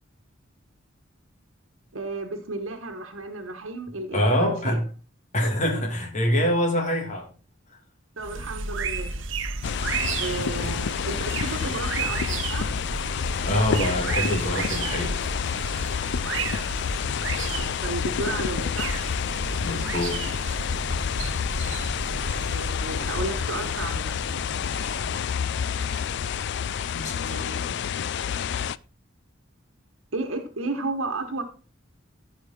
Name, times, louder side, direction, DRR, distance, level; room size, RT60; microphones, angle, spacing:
voice 1, 1.9-4.8 8.2-9.1 10.2-12.7 17.5-19.0 22.4-24.1 27.1-27.8 30.1-31.4, right 2 dB, 85° right, 1.3 m, -33 dB
voice 2, 4.1-4.8 5.3-7.3 8.4-8.5 9.8-10.0 10.6-10.8 11.6-11.7 13.4-15.1 19.6-20.3 26.9-27.4, equal, 35° left, 2.4 m, -25 dB
sound 1, 8.2-27.6, right 4 dB, 70° right, 0.9 m, -33 dB
sound 2, 9.6-28.8, left 8 dB, 60° left, 0.4 m, -29 dB
15.0 x 5.0 x 4.3 m
head